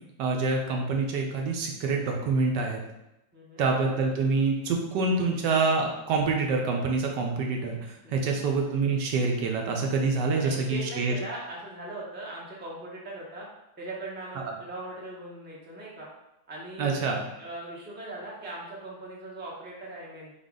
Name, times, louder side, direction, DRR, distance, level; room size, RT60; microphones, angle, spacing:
voice 1, 0.2-2.8 3.6-7.8 8.1-11.1 14.4-14.5 16.8-17.2, right 4 dB, 75° right, 1 dB, 1.2 m, -26 dB
voice 2, 3.3-3.7 8.0-8.4 10.4-13.5 13.8-16.1 16.5-17.0 17.4-20.3, right 2 dB, 10° right, -5 dB, 0.5 m, -40 dB
4.0 x 3.4 x 3.7 m, 0.90 s
omnidirectional pair, 2.0 m